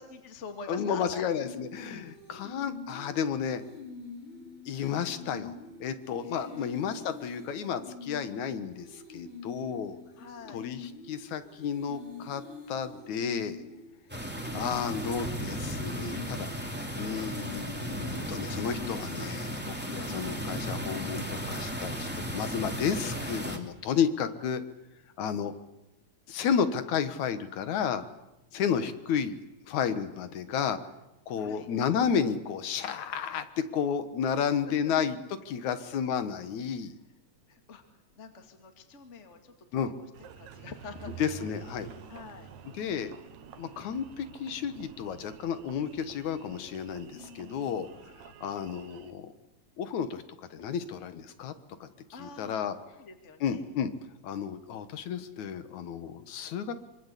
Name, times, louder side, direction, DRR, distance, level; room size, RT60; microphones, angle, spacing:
voice 1, 0.0-1.2 6.2-6.7 10.2-10.7 31.4-31.7 34.6-34.9 35.6-35.8 37.5-37.8 38.1-39.5 40.0-40.1 40.4-41.5 42.1-42.5 47.0-47.8 52.1-52.5 53.0-53.6, left 4 dB, 25° left, 6 dB, 2.3 m, -46 dB
voice 2, 0.7-3.6 4.7-5.6 5.8-10.0 10.5-12.4 12.7-13.6 14.5-16.5 17.0-24.6 25.2-25.5 26.3-28.0 28.5-29.4 29.7-30.8 31.3-35.2 35.5-37.0 39.7-39.9 41.2-41.9 42.8-43.1 43.6-49.3 49.8-50.2 50.5-51.5 51.8-51.9 52.2-52.7 53.4-53.9 54.2-56.7, left 7 dB, 80° left, 11 dB, 2.8 m, -32 dB
sound 1, 1.4-21.2, left 4 dB, 45° left, 7.2 m, -46 dB
sound 2, 14.1-23.6, equal, 5° right, 2.5 m, -35 dB
Engine, 40.1-49.1, right 8 dB, 80° right, 2.7 m, -49 dB
25.0 x 25.0 x 8.4 m, 0.94 s
omnidirectional pair, 3.3 m